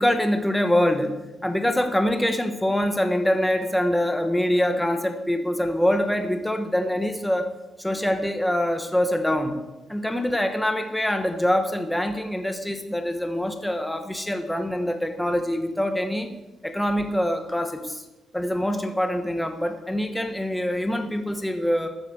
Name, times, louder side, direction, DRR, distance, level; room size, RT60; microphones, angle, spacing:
voice 1, 0.0-7.5 7.8-9.6 9.9-16.3 16.6-18.0 18.3-21.9, left 1 dB, 5° left, 6 dB, 1.2 m, -24 dB
13.0 x 8.2 x 7.4 m, 1.0 s
cardioid pair, 150°, 0 cm